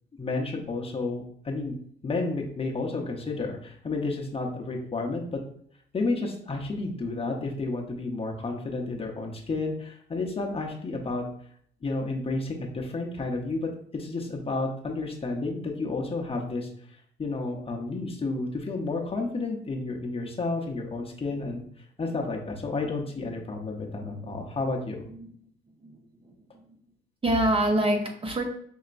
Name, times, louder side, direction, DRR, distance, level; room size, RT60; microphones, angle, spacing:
voice 1, 0.2-1.7 2.0-5.4 5.9-11.3 11.8-16.7 17.2-25.1, left 3 dB, 30° left, 1 dB, 0.8 m, -31 dB
voice 2, 24.0-24.3 25.1-25.3 25.8-26.0 26.2-26.3 26.6-26.8 27.2-28.4, right 1 dB, 25° right, 2 dB, 0.8 m, -26 dB
5.4 x 2.8 x 2.5 m, 0.63 s
cardioid pair, 90°, 20 cm